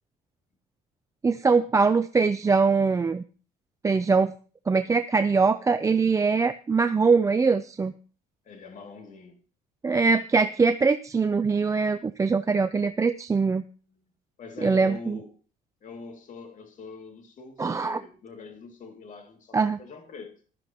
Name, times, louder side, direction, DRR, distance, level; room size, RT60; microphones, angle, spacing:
voice 1, 1.2-3.2 3.8-4.3 4.7-7.9 9.8-13.6 14.6-15.2 17.6-18.0 19.5-19.8, right 4 dB, 20° right, 0.4 m, -22 dB
voice 2, 8.4-9.4 13.9-14.0 14.4-15.3 15.8-20.4, left 4 dB, 50° left, 2.5 m, -43 dB
16.0 x 12.0 x 2.9 m
cardioid pair, 110°, 17 cm